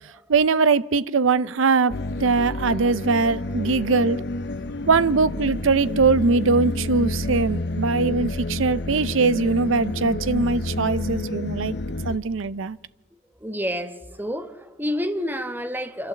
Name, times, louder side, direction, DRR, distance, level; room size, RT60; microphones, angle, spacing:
voice 1, 0.3-4.2 4.9-11.7 12.0-12.8, right 4 dB, 75° right, 0.6 m, -21 dB
sound 1, 1.9-12.2, left 2 dB, 55° left, 0.8 m, -29 dB
voice 2, 13.4-16.1, equal, 10° right, 1.2 m, -29 dB
26.0 x 12.0 x 8.2 m
head